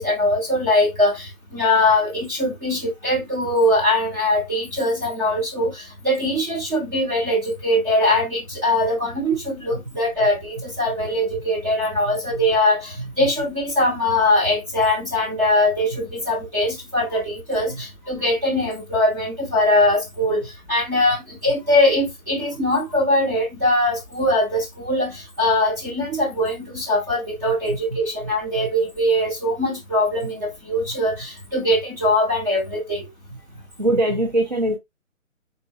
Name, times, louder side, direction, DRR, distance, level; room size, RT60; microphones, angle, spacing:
voice 1, 0.0-20.4 20.7-33.0, left 1 dB, 15° right, 0.8 m, -21 dB
voice 2, 12.1-12.4 13.2-13.3 17.7-17.8 27.7-27.8 28.6-28.7 33.5-34.8, right 1 dB, 35° right, 0.4 m, -23 dB
3.7 x 2.9 x 2.6 m
hypercardioid pair, 160°, 41 cm